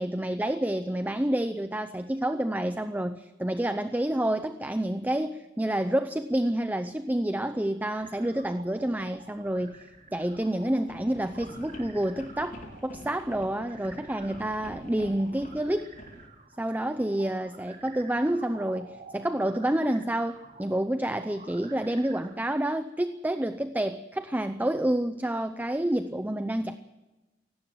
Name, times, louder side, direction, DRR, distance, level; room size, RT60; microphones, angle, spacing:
voice 1, 0.0-9.8 10.1-15.9 16.6-26.8, right 1 dB, 10° right, 10 dB, 0.6 m, -29 dB
sound 1, 6.4-6.5 8.3-8.5 8.9-9.4 9.8-16.3, left 1 dB, 45° left, 4.3 m, -47 dB
sound 2, 8.0-22.3, right 3 dB, 45° right, 3.0 m, -50 dB
17.5 x 17.0 x 9.3 m, 1.1 s
head